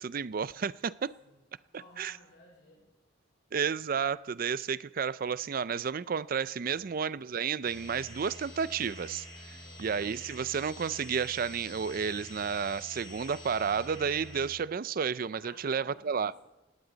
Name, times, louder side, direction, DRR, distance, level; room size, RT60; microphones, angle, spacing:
voice 1, 0.0-1.1 2.0-2.1 3.5-16.3, right 6 dB, 50° right, 0.4 m, -32 dB
voice 2, 1.7-2.9 6.6-6.9 9.5-9.9 15.4-16.4, left 2 dB, 60° left, 5.6 m, -56 dB
sound 1, 7.6-14.5, left 1 dB, 30° left, 5.9 m, -47 dB
18.5 x 18.0 x 4.0 m
head